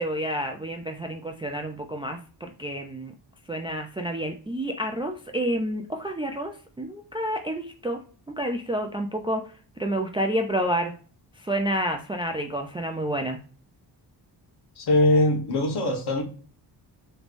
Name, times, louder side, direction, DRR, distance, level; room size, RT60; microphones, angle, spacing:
voice 1, 0.0-3.1 3.5-8.0 8.4-9.4 9.8-10.9 11.4-13.4, right 1 dB, 15° right, 4 dB, 0.3 m, -29 dB
voice 2, 14.8-16.2, left 1 dB, 60° left, 1 dB, 1.3 m, -21 dB
3.2 x 3.1 x 2.5 m, 0.40 s
wide cardioid pair, 120°, 44 cm